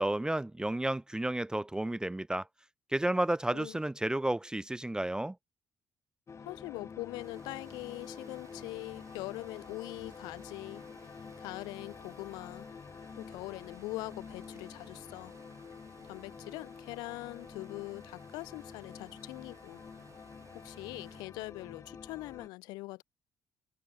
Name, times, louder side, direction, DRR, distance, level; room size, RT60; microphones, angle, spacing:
voice 1, 0.0-2.5 2.9-5.4, right 1 dB, 10° right, 0.5 m, -31 dB
sound 1, 6.3-22.5, left 5 dB, 40° left, 3.8 m, -48 dB
voice 2, 6.4-10.8 11.4-12.7 13.1-15.3 16.0-19.8 20.5-23.0, left 22 dB, 75° left, 2.0 m, -42 dB
Water, 7.2-21.2, right 6 dB, 45° right, 3.3 m, -60 dB
open air
hypercardioid pair, 45°, 7 cm